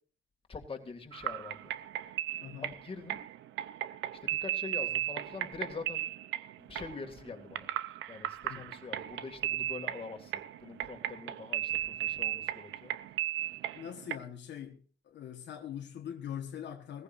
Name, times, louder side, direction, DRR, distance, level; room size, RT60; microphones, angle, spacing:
voice 1, 0.5-1.7 2.6-3.2 4.2-6.1 6.6-7.7 8.1-12.9 13.3-13.6, left 4 dB, 30° left, 2.4 m, -44 dB
sound 1, 1.1-14.2, right 13 dB, 85° right, 0.8 m, -36 dB
voice 2, 2.4-2.8 8.5-8.7 13.8-17.0, left 9 dB, 65° left, 1.4 m, -42 dB
18.0 x 15.0 x 2.6 m
cardioid pair, 105°, 19 cm